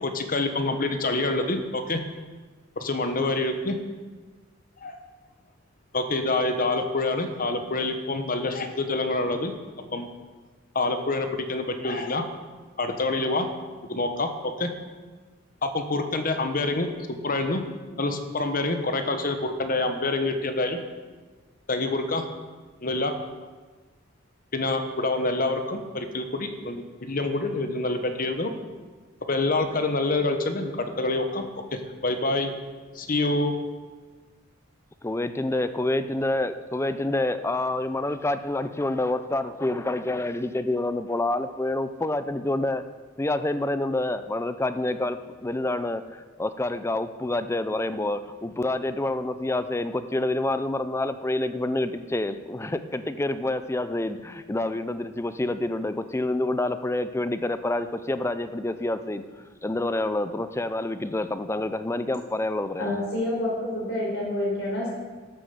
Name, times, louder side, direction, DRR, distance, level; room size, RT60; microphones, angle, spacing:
voice 1, 0.0-2.0 2.8-3.8 4.8-5.0 5.9-9.5 9.9-10.1 10.7-12.2 12.8-13.5 13.9-14.7 15.6-16.9 17.2-17.6 18.0-20.8 21.7-22.2 22.8-23.1 24.5-28.5 29.3-32.5 32.9-33.5, left 2 dB, 45° left, 7 dB, 1.1 m, -26 dB
voice 2, 35.0-42.8 43.2-59.2 59.6-62.9, left 2 dB, 15° left, 11 dB, 0.5 m, -27 dB
voice 3, 62.8-64.9, left 1 dB, 70° left, -3 dB, 4.4 m, -28 dB
12.5 x 7.3 x 7.0 m, 1.4 s
head